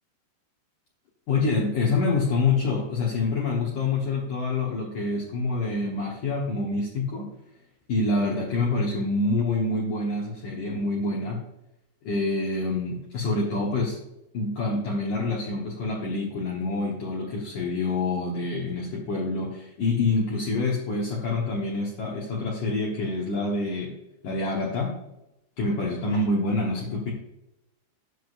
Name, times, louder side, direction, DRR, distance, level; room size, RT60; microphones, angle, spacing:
voice 1, 1.3-7.3 7.9-11.4 12.0-14.0 14.3-23.9 24.2-25.0 25.6-27.1, left 3 dB, 85° left, -2 dB, 1.7 m, -26 dB
10.0 x 6.3 x 2.4 m, 0.90 s
omnidirectional pair, 5.1 m